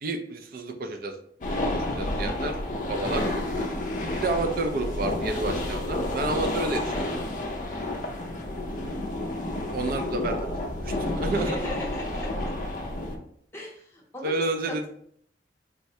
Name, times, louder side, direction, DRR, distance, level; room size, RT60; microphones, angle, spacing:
voice 1, 0.0-1.2 1.5-2.5 2.9-3.2 4.2-6.9 9.7-10.6 10.8-11.6 14.2-14.8, right 2 dB, 55° right, 6 dB, 0.4 m, -30 dB
sound 1, 1.4-13.2, left 1 dB, 45° left, 0.4 m, -30 dB
voice 2, 8.6-8.9 11.3-12.3 13.5-14.4 14.7-14.9, left 1 dB, 15° left, -3 dB, 0.8 m, -37 dB
3.5 x 2.1 x 2.7 m, 0.65 s
head